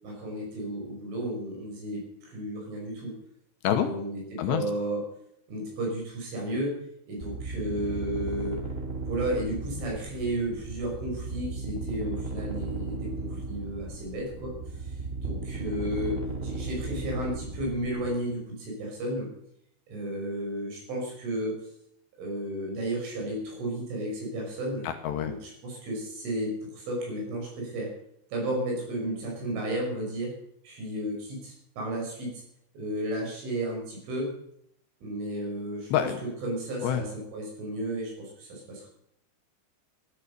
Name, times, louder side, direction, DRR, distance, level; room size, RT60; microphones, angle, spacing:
voice 1, 0.0-3.2 3.7-5.0 5.5-6.8 7.1-8.6 9.1-14.5 14.8-19.3 19.9-21.6 22.2-24.9 25.2-27.9 28.3-30.3 30.6-32.4 32.7-34.3 35.0-36.1 36.4-38.9, right 1 dB, 75° right, -1 dB, 8.5 m, -33 dB
sound 1, 7.2-18.1, right 3 dB, 20° right, 1.6 m, -35 dB
voice 2, 24.8-25.3 35.9-36.2 36.8-37.0, left 10 dB, 75° left, 6 dB, 3.0 m, -26 dB
15.0 x 13.0 x 6.8 m, 0.71 s
omnidirectional pair, 5.5 m